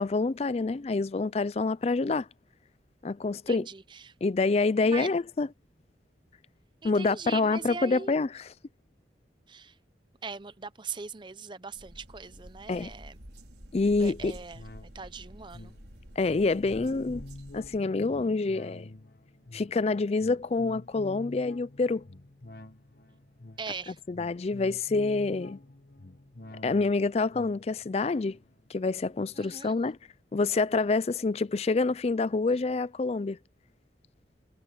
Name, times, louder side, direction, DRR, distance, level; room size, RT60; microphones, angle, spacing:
voice 1, 0.0-2.3 3.0-3.7 4.2-5.5 6.8-8.5 12.7-12.9 13.7-14.4 16.2-17.2 17.5-18.9 19.5-22.0 24.1-25.6 26.6-28.4 28.7-30.0 30.3-33.4, left 3 dB, 35° left, 0.4 m, -27 dB
voice 2, 3.5-4.1 4.8-5.1 6.8-8.1 9.5-9.8 10.2-13.2 14.0-15.7 23.6-24.0 29.4-29.7, right 5 dB, 25° right, 0.6 m, -40 dB
sound 1, 11.7-17.8, equal, 70° right, 4.9 m, -49 dB
sound 2, 14.2-29.9 30.3-30.4, left 2 dB, 55° left, 1.5 m, -49 dB
head